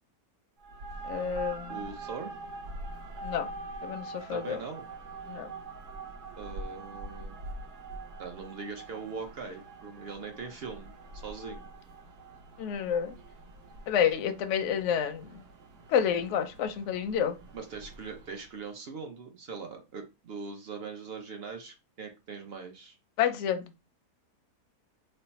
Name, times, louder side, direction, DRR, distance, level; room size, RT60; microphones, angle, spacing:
sound 1, 0.6-18.5, right 2 dB, 85° right, 1.4 m, -44 dB
voice 1, 1.1-1.8 3.2-3.5 3.8-4.6 5.3-5.5 12.6-13.1 13.9-15.4 15.9-17.3 23.2-23.7, left 8 dB, 70° left, 0.7 m, -29 dB
voice 2, 1.7-2.3 4.3-4.9 6.4-7.4 8.2-11.7 17.5-23.0, right 5 dB, 55° right, 0.7 m, -41 dB
3.3 x 2.1 x 4.0 m
omnidirectional pair, 1.7 m